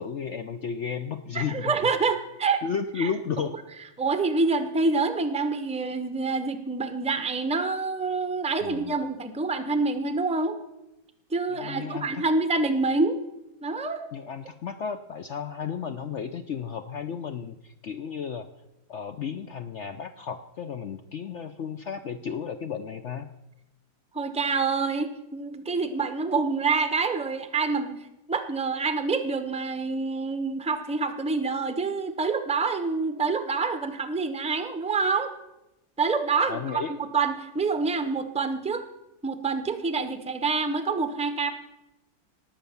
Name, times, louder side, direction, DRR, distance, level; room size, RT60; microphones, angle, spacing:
voice 1, 0.0-1.8 2.6-3.5 8.6-9.0 11.5-12.2 14.1-18.5 18.9-23.3 36.5-36.9, left 7 dB, 90° left, 9 dB, 0.6 m, -33 dB
voice 2, 1.3-2.6 3.0-3.1 4.0-10.6 11.3-13.2 13.6-14.0 24.1-28.0 28.3-35.3 36.0-38.8 39.2-41.5, right 4 dB, 10° right, 10 dB, 0.4 m, -27 dB
19.0 x 7.7 x 7.0 m, 0.92 s
omnidirectional pair, 2.1 m